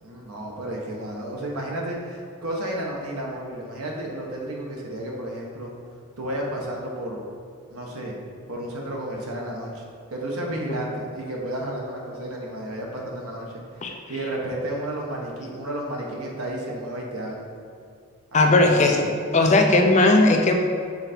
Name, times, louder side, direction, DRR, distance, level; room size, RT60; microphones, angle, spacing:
voice 1, 0.0-5.7 6.2-7.2 7.7-8.1 8.5-9.8 10.1-13.8 14.1-17.5 18.3-18.9, right 1 dB, 80° right, -2 dB, 1.1 m, -32 dB
voice 2, 18.3-19.1 19.3-20.5, left 2 dB, 30° left, 3 dB, 0.4 m, -18 dB
5.7 x 3.9 x 4.3 m, 2.3 s
head